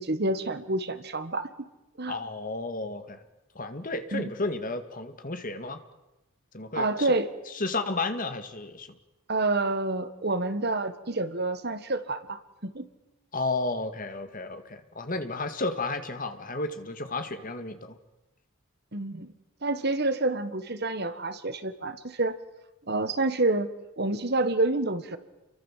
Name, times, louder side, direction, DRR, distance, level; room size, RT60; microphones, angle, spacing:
voice 1, 0.0-1.5 2.0-2.2 4.1-4.2 6.7-7.3 9.3-12.9 18.9-19.3 19.6-22.3 22.9-23.7 24.0-25.2, right 2 dB, 45° right, 11 dB, 1.6 m, -28 dB
voice 2, 2.1-3.2 3.6-5.8 6.5-7.1 7.5-8.9 13.3-18.0, left 2 dB, 40° left, 8 dB, 2.1 m, -32 dB
29.5 x 23.5 x 7.5 m, 0.99 s
head